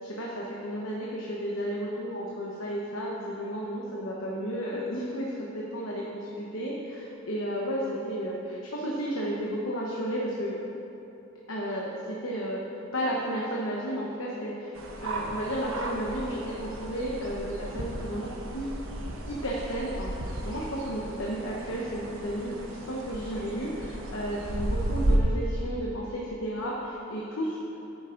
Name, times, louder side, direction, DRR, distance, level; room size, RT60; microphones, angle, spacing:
voice 1, 0.0-10.6 11.5-12.6 12.9-14.7 15.0-18.7 19.3-27.8, equal, 70° left, -4 dB, 1.1 m, -33 dB
sound 1, 14.7-25.2, right 1 dB, 65° right, 1.0 m, -34 dB
9.9 x 9.0 x 3.9 m, 3.0 s
head